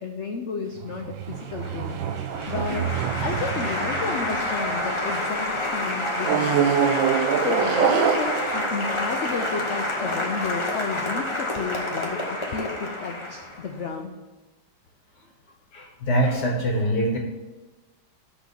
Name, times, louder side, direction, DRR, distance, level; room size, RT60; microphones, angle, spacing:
voice 1, 0.0-2.0 2.5-2.9 3.2-6.8 7.4-14.1, left 5 dB, 85° left, 3 dB, 0.6 m, -32 dB
sound 1, 0.8-5.4 6.2-9.8, right 8 dB, 90° right, 1.4 m, -26 dB
Applause, 1.3-13.8, left 1 dB, 20° left, 0.7 m, -29 dB
voice 2, 15.7-17.2, right 1 dB, 60° left, 0 dB, 1.7 m, -23 dB
6.2 x 5.4 x 6.9 m, 1.2 s
omnidirectional pair, 2.1 m